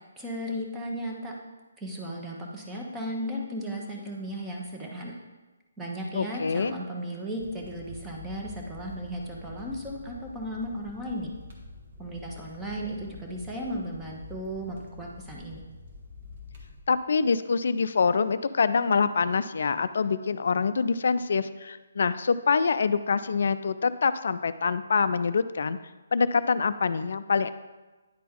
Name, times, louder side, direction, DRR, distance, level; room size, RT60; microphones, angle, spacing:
voice 1, 0.0-1.3 1.8-5.2 5.8-11.3 12.0-15.6, equal, 10° right, -2 dB, 1.1 m, -35 dB
voice 2, 6.1-6.7 16.9-25.8 26.1-27.5, left 5 dB, 60° left, 13 dB, 0.3 m, -25 dB
sound 1, 7.4-16.8, left 3 dB, 45° right, 1.5 m, -47 dB
10.0 x 4.1 x 3.8 m, 1.2 s
figure-of-eight pair, 140°, 0 cm